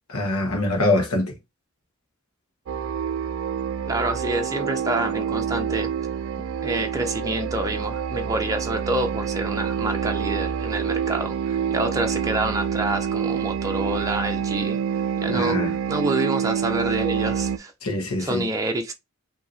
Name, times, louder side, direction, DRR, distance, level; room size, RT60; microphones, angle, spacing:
voice 1, 0.1-1.3 15.3-15.7 17.8-18.5, left 2 dB, 85° left, 1.2 m, -24 dB
sound 1, 2.7-17.6, right 7 dB, 65° right, 0.3 m, -27 dB
voice 2, 3.9-5.9 6.6-14.8 15.2-17.7 18.2-18.9, right 2 dB, 15° right, 0.7 m, -27 dB
5.1 x 2.8 x 3.1 m
head